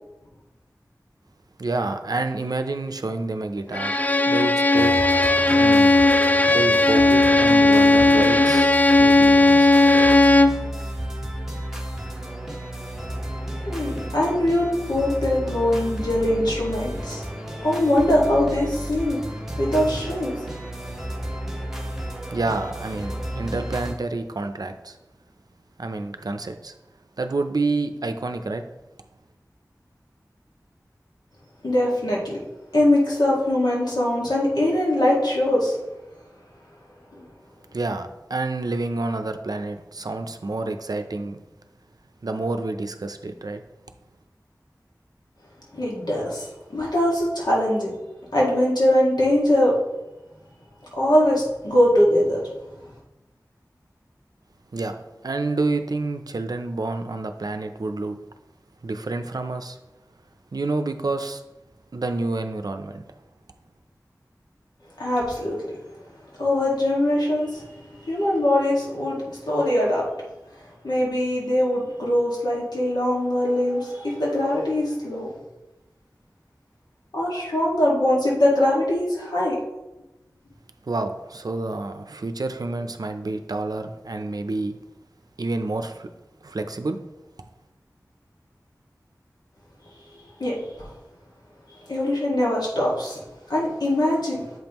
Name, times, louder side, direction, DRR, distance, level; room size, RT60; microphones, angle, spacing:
voice 1, 1.6-4.0 4.2-4.9 5.6-5.9 6.5-9.8 22.3-25.0 25.8-26.7 27.2-28.6 37.7-41.4 42.2-43.6 54.7-58.2 58.8-59.8 60.5-61.4 61.9-63.0 80.9-84.8 85.4-86.1 86.4-87.0, right 2 dB, 65° right, 7 dB, 0.6 m, -28 dB
Bowed string instrument, 3.7-10.7, left 2 dB, 20° left, 0.3 m, -16 dB
sound 1, 4.8-23.9, right 1 dB, 5° right, 1.3 m, -33 dB
voice 2, 13.7-17.2 17.6-19.2 19.6-20.3 31.6-32.4 32.7-35.8 37.1-37.3 45.7-47.9 48.3-49.8 51.0-52.5 65.0-65.7 66.4-70.0 70.8-75.3 77.1-79.6 90.4-90.9 91.9-93.2 93.5-94.4, left 1 dB, 90° left, -5 dB, 1.9 m, -22 dB
7.6 x 5.3 x 3.0 m, 0.99 s
wide cardioid pair, 55°, 7 cm